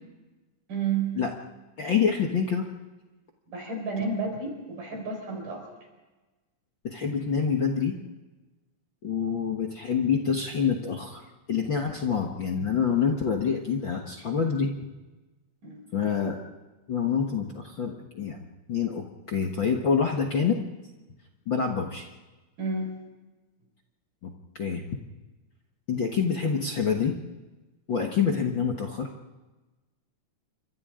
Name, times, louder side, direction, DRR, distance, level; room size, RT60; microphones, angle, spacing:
voice 1, 0.7-1.2 3.5-5.7 15.6-15.8 22.6-23.0, right 4 dB, 70° right, 2 dB, 6.4 m, -31 dB
voice 2, 1.8-2.7 6.8-8.0 9.0-11.2 11.5-14.7 15.9-16.4 16.9-20.6 21.5-22.1 24.2-25.0 25.9-27.1 27.9-29.1, left 6 dB, 50° left, 1 dB, 1.6 m, -27 dB
28.5 x 25.0 x 3.8 m, 1.2 s
omnidirectional pair, 3.9 m